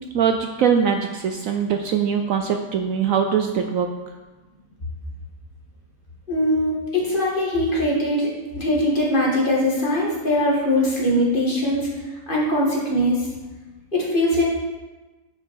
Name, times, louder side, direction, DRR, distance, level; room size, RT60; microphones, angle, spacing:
voice 1, 0.1-3.9, right 7 dB, 65° right, 5 dB, 0.9 m, -22 dB
voice 2, 6.3-11.9 12.3-13.3 13.9-14.4, left 1 dB, 30° left, -4 dB, 2.0 m, -21 dB
9.6 x 5.9 x 4.7 m, 1.2 s
omnidirectional pair, 1.7 m